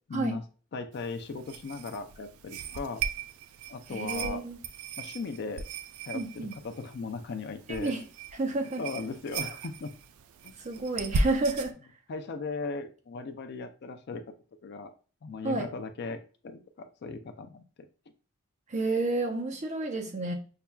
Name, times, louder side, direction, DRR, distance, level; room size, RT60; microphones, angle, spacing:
voice 1, 0.1-0.4 0.7-3.0 3.7-4.4 5.0-5.6 6.1-7.9 8.8-9.9 10.4-10.6 12.1-14.2 14.6-14.9 15.2-17.6, left 4 dB, 55° left, 8 dB, 0.4 m, -37 dB
sound 1, 0.9-11.7, right 4 dB, 80° right, 0.3 m, -37 dB
voice 2, 3.9-4.6 6.1-6.5 7.7-8.0 8.3-8.8 10.6-11.7 15.4-15.7 18.7-20.3, right 2 dB, 35° right, 2 dB, 0.6 m, -30 dB
5.6 x 2.3 x 2.2 m, 0.37 s
head